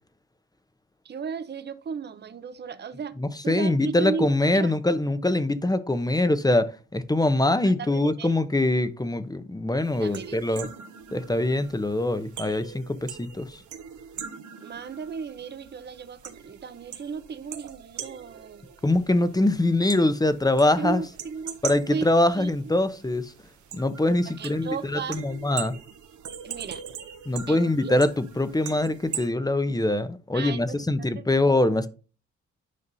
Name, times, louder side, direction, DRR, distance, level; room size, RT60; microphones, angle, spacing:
voice 1, 1.0-3.2 3.4-4.8 7.6-8.3 10.0-10.7 14.6-18.7 20.8-21.6 21.9-22.8 24.3-25.2 26.4-26.8 27.5-27.9 30.3-31.2, right 6 dB, 35° right, 0.7 m, -35 dB
voice 2, 3.2-10.7 11.1-13.6 18.8-21.0 21.6-23.3 23.7-25.7 27.3-31.9, left 2 dB, 10° left, 0.8 m, -23 dB
sound 1, 9.8-29.3, right 8 dB, 70° right, 1.1 m, -41 dB
9.7 x 5.3 x 2.7 m
supercardioid pair, 50°, 31 cm